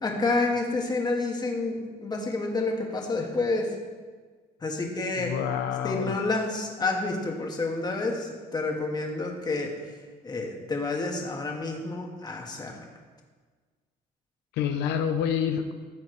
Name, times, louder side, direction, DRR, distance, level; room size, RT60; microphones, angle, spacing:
voice 1, 0.0-3.7 4.6-5.3 5.8-9.7 10.2-12.7, left 3 dB, 25° left, 1 dB, 1.6 m, -29 dB
voice 2, 5.2-6.2 14.5-15.7, left 8 dB, 85° left, 6 dB, 0.7 m, -27 dB
14.0 x 7.1 x 3.3 m, 1.5 s
cardioid pair, 110°, 17 cm